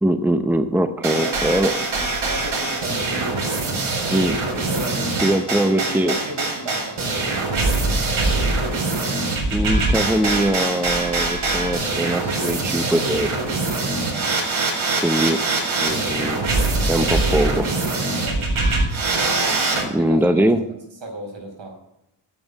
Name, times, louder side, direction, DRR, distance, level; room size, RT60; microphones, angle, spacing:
voice 1, 0.0-1.7 4.1-4.4 5.2-6.2 9.5-13.3 14.9-15.4 15.7-16.4 16.9-17.7 19.9-20.6, right 1 dB, 5° right, 8 dB, 0.8 m, -21 dB
sound 1, 1.0-19.8, right 3 dB, 85° right, 4.3 m, -23 dB
voice 2, 1.1-3.4 4.6-5.3 5.6-8.8 13.9-14.4 15.9-16.1 18.1-18.5 19.9-20.5 21.0-21.8, right 1 dB, 65° right, 1 dB, 5.2 m, -35 dB
8.9 x 8.6 x 8.5 m, 0.83 s
wide cardioid pair, 110°, 47 cm